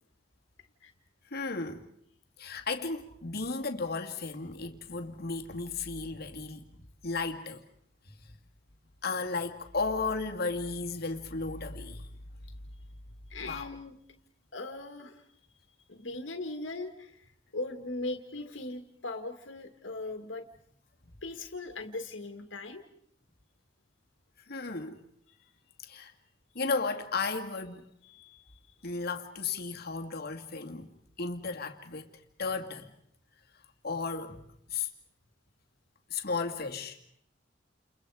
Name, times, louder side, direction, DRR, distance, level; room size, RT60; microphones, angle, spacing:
voice 1, 1.3-1.8 2.4-6.6 7.0-7.6 9.0-12.1 13.5-13.7 24.5-25.0 25.8-26.1 26.5-27.8 28.8-30.9 31.2-32.9 33.8-34.4 34.7-34.9 36.1-37.0, left 4 dB, 55° left, 2.3 m, -34 dB
voice 2, 13.3-14.0 14.5-15.2 15.9-20.4 21.2-22.8 28.0-28.6, left 2 dB, 80° left, 2.0 m, -39 dB
30.0 x 29.5 x 4.9 m
head